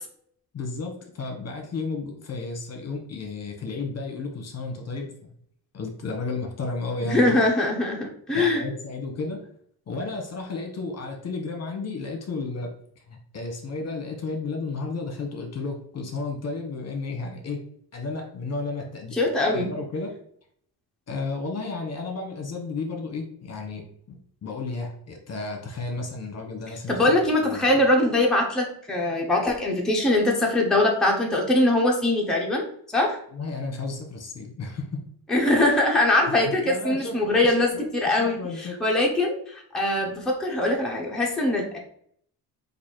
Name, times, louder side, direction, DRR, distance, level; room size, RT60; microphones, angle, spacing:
voice 1, 0.5-5.3 5.7-7.3 8.3-9.5 9.9-12.7 13.0-17.6 17.9-19.2 19.5-20.2 21.1-27.1 27.4-27.7 33.3-35.0 36.6-38.8, left 3 dB, 40° left, 2 dB, 1.2 m, -33 dB
voice 2, 7.0-8.6 19.1-19.7 26.9-33.2 35.3-41.8, left 1 dB, ahead, -2 dB, 0.9 m, -22 dB
4.2 x 2.7 x 4.5 m, 0.64 s
cardioid pair, 105°, 38 cm